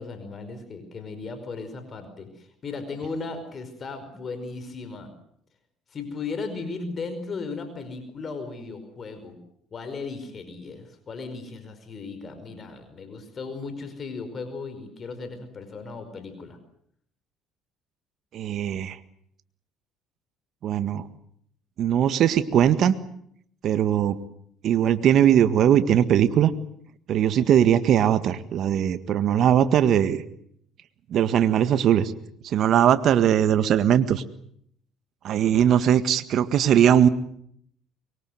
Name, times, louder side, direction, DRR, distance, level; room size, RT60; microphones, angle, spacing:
voice 1, 0.0-5.1 5.9-9.4 9.7-16.6, left 4 dB, 40° left, 9 dB, 5.1 m, -36 dB
voice 2, 18.3-19.0 20.6-21.0 21.8-23.0 23.6-24.2 24.6-26.5 27.1-30.2 31.1-32.1 32.4-34.2 35.2-37.1, right 10 dB, 60° right, 12 dB, 1.8 m, -20 dB
24.5 x 23.0 x 8.0 m, 0.68 s
hypercardioid pair, 65°, 0 cm